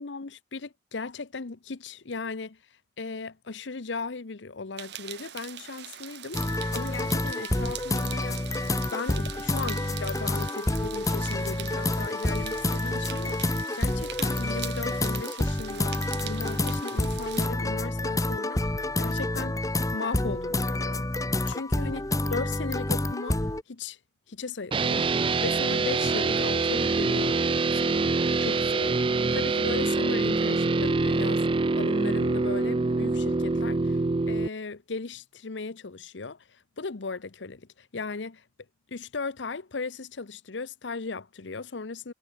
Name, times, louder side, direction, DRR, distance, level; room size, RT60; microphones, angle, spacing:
voice 1, 0.0-2.6 3.0-8.4 8.9-18.6 19.0-19.6 19.9-21.1 21.5-22.0 22.3-23.4 23.7-24.0 24.3-25.1 25.4-27.4 27.7-34.0 34.3-38.4 38.9-42.1, left 4 dB, 80° left, 0.9 m, -37 dB
sound 1, 4.8-17.5, right 12 dB, 65° right, 1.0 m, -42 dB
sound 2, 6.3-23.6, left 1 dB, 20° left, 1.0 m, -28 dB
sound 3, 24.7-34.5, right 3 dB, 30° right, 0.4 m, -25 dB
head